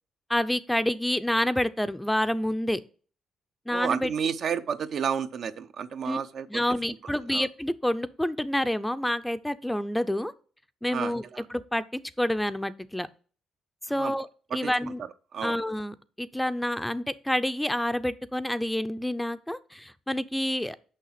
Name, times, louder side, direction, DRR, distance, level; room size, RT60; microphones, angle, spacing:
voice 1, 0.3-2.8 3.7-4.1 6.1-6.2 6.5-10.3 10.8-11.2 11.5-13.1 13.9-14.3 14.5-15.0 15.4-20.8, left 1 dB, 5° left, 13 dB, 0.5 m, -28 dB
voice 2, 3.7-6.6 7.3-7.5 10.9-11.4 14.0-14.1 14.6-14.7 15.3-15.6, right 7 dB, 60° right, 10 dB, 0.7 m, -31 dB
6.5 x 5.8 x 5.8 m, 0.40 s
cardioid pair, 90°, 0 cm